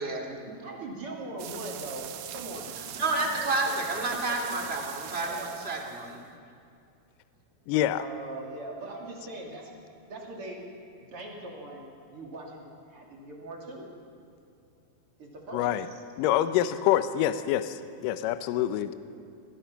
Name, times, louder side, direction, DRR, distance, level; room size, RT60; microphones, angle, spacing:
voice 1, 0.0-0.5 3.0-5.4 5.6-6.2, right 2 dB, 20° right, 1 dB, 1.9 m, -30 dB
voice 2, 0.6-3.9 4.2-4.5 5.3-5.6 8.0-9.7 10.1-10.6 11.1-13.9 15.2-15.8 17.1-17.5, right 2 dB, 40° right, 0 dB, 3.2 m, -41 dB
sound 1, 1.4-6.1, right 10 dB, 70° right, 2.0 m, -41 dB
voice 3, 7.7-8.1 15.5-15.9 16.2-19.0, left 12 dB, 75° left, 12 dB, 2.2 m, -26 dB
26.0 x 18.5 x 5.8 m, 2.5 s
omnidirectional pair, 4.2 m